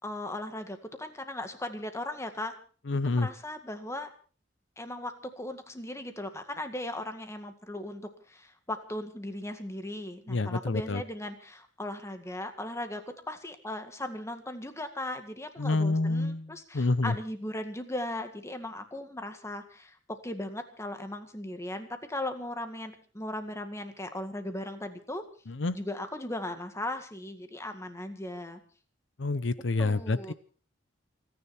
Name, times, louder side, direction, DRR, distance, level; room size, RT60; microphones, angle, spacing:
voice 1, 0.0-2.5 3.1-4.1 4.8-25.2 25.7-28.6 29.8-30.3, left 1 dB, 15° left, 8 dB, 2.0 m, -38 dB
voice 2, 2.9-3.3 10.3-11.0 15.6-17.1 25.5-25.8 29.2-30.3, left 3 dB, 70° left, 15 dB, 0.7 m, -28 dB
29.5 x 10.5 x 4.4 m, 0.40 s
head